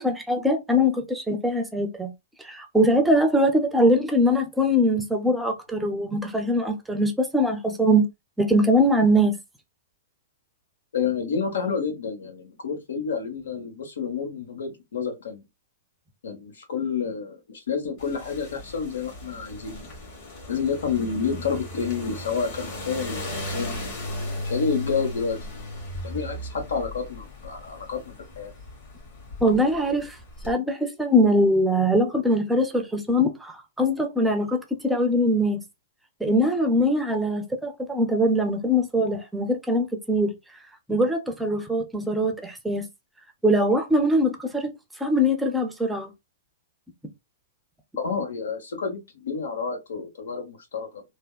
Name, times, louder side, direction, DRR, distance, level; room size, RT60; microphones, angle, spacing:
voice 1, 0.0-2.1 2.4-8.1 8.4-9.4 29.4-30.2 30.4-35.6 36.2-40.3 40.9-42.8 43.4-46.1, equal, 5° right, 0.5 m, -22 dB
voice 2, 10.9-15.4 16.2-19.9 20.5-23.8 24.4-25.4 26.0-28.5 48.0-51.0, left 6 dB, 80° left, 1.0 m, -29 dB
sound 1, 18.0-30.5, left 1 dB, 40° left, 1.9 m, -37 dB
3.4 x 2.1 x 2.3 m
hypercardioid pair, 135°, 0 cm